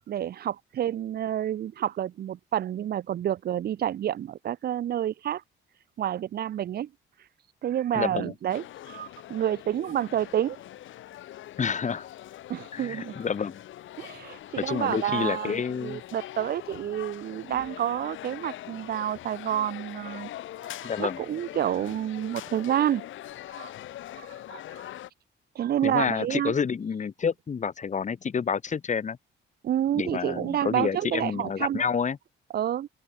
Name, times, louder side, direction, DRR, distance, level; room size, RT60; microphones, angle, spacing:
voice 1, 0.1-5.4 6.0-6.9 7.6-10.6 12.5-13.2 14.0-20.3 20.6-23.1 23.6-23.7 24.2-24.9 25.6-26.5 29.6-31.8 32.5-32.9, right 11 dB, 50° right, 0.5 m, -29 dB
voice 2, 7.9-8.3 11.6-12.1 12.7-13.6 14.6-16.0 20.8-21.2 25.8-29.2 29.9-32.2, left 6 dB, 40° left, 1.6 m, -29 dB
sound 1, 8.5-25.1, left 13 dB, 80° left, 3.1 m, -42 dB
open air
cardioid pair, 90°, 20 cm